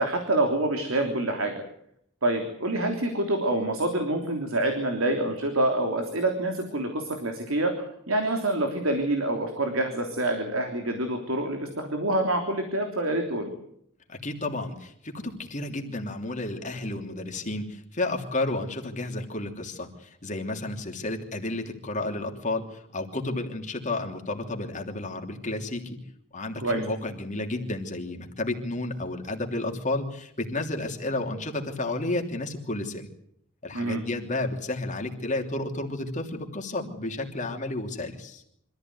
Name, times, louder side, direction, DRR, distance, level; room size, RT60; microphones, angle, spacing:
voice 1, 0.0-1.6 2.2-13.5 26.6-26.8 33.7-34.0, right 1 dB, 85° right, 4 dB, 3.4 m, -26 dB
voice 2, 14.1-26.0 26.3-33.1 33.6-38.4, left 2 dB, 40° left, 3 dB, 3.2 m, -32 dB
25.5 x 15.0 x 9.5 m, 0.72 s
head